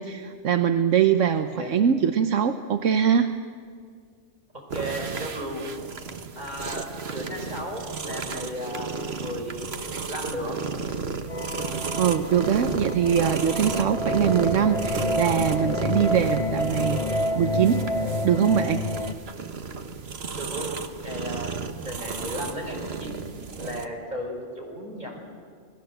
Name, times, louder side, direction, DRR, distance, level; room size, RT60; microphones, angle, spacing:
voice 1, 0.0-3.3 12.0-17.9 18.2-18.9, right 8 dB, 75° right, 8 dB, 1.2 m, -23 dB
voice 2, 1.3-1.8 4.7-5.6 6.4-9.7 10.1-10.6 20.3-20.8 21.0-21.5 21.8-23.2 23.6-25.2, equal, 35° right, 0 dB, 6.0 m, -35 dB
sound 1, 4.7-23.9, right 5 dB, 55° right, 1.5 m, -33 dB
sound 2, 11.3-19.1, left 1 dB, 30° left, 0.9 m, -29 dB
29.0 x 20.0 x 7.9 m, 2.1 s
omnidirectional pair, 1.3 m